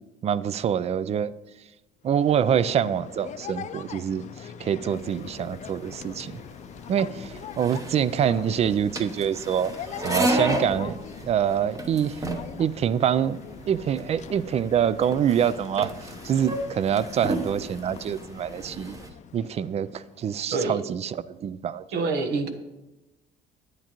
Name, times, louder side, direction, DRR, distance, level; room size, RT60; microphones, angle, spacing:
voice 1, 0.2-1.3 2.0-6.4 6.9-9.7 10.0-11.0 11.2-12.2 12.6-13.4 13.7-15.9 16.2-19.0 19.3-22.1, right 8 dB, 40° right, 17 dB, 0.4 m, -25 dB
sound 1, 2.1-20.5, left 8 dB, 45° left, 0.5 m, -42 dB
sound 2, 4.9-19.1, right 1 dB, 20° right, 1.0 m, -33 dB
voice 2, 21.9-22.5, right 3 dB, 85° right, 8 dB, 1.1 m, -26 dB
11.0 x 9.1 x 3.0 m, 1.0 s
cardioid pair, 110°, 17 cm